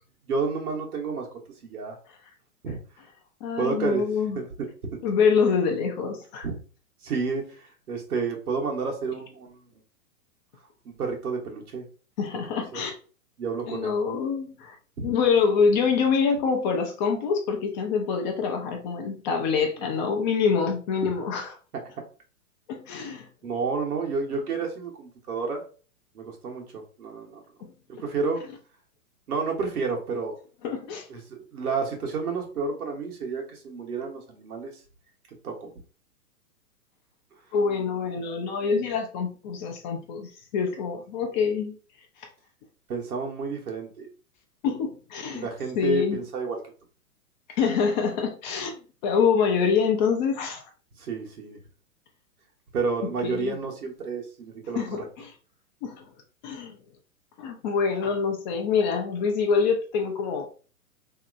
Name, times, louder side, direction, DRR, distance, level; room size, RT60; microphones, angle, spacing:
voice 1, 0.3-1.3 1.6-1.9 2.6-2.8 3.6-4.0 4.3-4.7 6.4-6.6 7.0-9.6 10.8-11.9 12.7-12.8 13.4-14.0 15.0-15.1 23.4-25.6 26.1-27.4 27.9-28.4 29.3-30.4 31.1-34.7 35.4-35.7 42.9-44.1 45.3-46.6 51.0-51.6 52.7-54.8, right 4 dB, 80° right, 1 dB, 1.1 m, -30 dB
voice 2, 3.4-4.4 5.0-6.5 12.2-13.0 13.7-14.8 15.0-21.5 22.7-23.3 30.6-31.1 37.5-41.7 44.6-45.5 45.8-46.2 47.5-50.6 53.2-53.6 54.8-55.3 55.8-56.0 56.4-56.8 57.4-60.5, left 5 dB, 30° left, 4 dB, 0.5 m, -25 dB
2.9 x 2.8 x 2.5 m, 0.38 s
hypercardioid pair, 120°, 44 cm